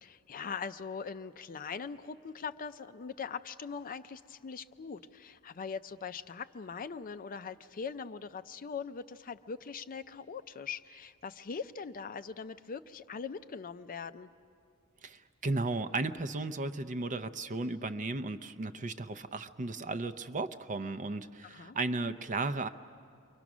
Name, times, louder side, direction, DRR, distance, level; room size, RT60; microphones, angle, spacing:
voice 1, 0.0-14.3 21.4-21.8, left 5 dB, 40° left, 11 dB, 0.5 m, -41 dB
voice 2, 15.0-22.7, right 3 dB, 35° right, 11 dB, 0.6 m, -35 dB
29.0 x 23.5 x 6.1 m, 2.4 s
head